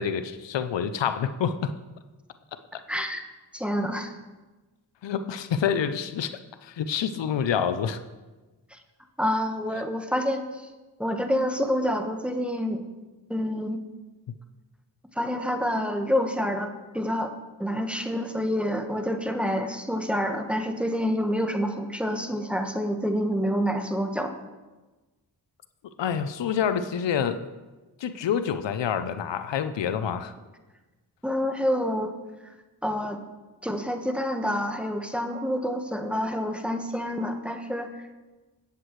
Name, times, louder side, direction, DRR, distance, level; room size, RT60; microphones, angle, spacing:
voice 1, 0.0-1.7 2.7-2.8 5.0-8.0 26.0-27.5 28.0-30.3, left 8 dB, 85° left, 11 dB, 0.6 m, -27 dB
voice 2, 2.9-3.2 3.5-4.1 8.7-8.8 9.2-10.6 11.0-12.8 13.3-13.8 15.1-17.3 17.6-24.3 31.2-32.1 32.8-33.2 33.6-37.9, equal, 5° right, 4 dB, 1.3 m, -27 dB
17.0 x 8.2 x 3.2 m, 1.2 s
cardioid pair, 45°, 42 cm